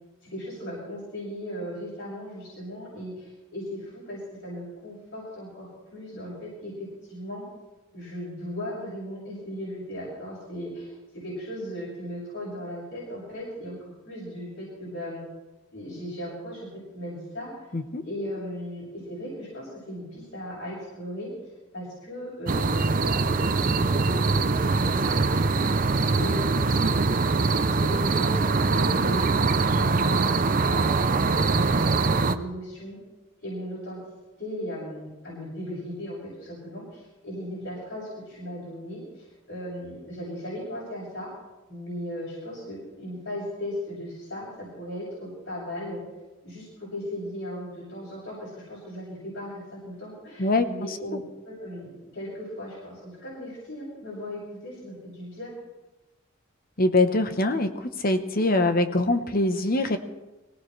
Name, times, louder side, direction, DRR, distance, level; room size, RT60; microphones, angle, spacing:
voice 1, 0.2-7.4 7.9-15.2 15.7-16.7 16.9-17.5 18.0-21.3 21.7-24.2 24.5-26.9 27.4-29.2 29.8-33.0 33.4-34.0 34.4-41.3 41.7-46.0 46.4-51.2 51.4-55.6, equal, 65° left, -7 dB, 7.6 m, -37 dB
sound 1, 22.5-32.3, right 3 dB, 40° right, 0.6 m, -23 dB
voice 2, 50.4-51.0 56.8-57.7 58.0-60.0, left 2 dB, 45° left, 8 dB, 1.0 m, -23 dB
24.0 x 17.5 x 3.3 m, 1.1 s
head